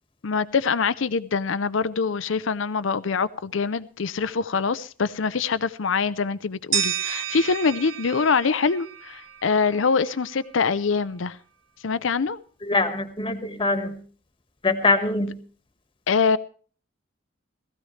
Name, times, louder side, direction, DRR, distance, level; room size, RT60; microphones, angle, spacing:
voice 1, 0.2-11.4 11.8-12.4 16.1-16.4, left 5 dB, 75° left, 0.6 m, -24 dB
sound 1, 6.7-9.6, right 9 dB, 85° right, 0.9 m, -30 dB
voice 2, 12.6-14.0 14.6-15.4, left 3 dB, 25° left, 1.4 m, -23 dB
19.0 x 14.5 x 3.2 m
head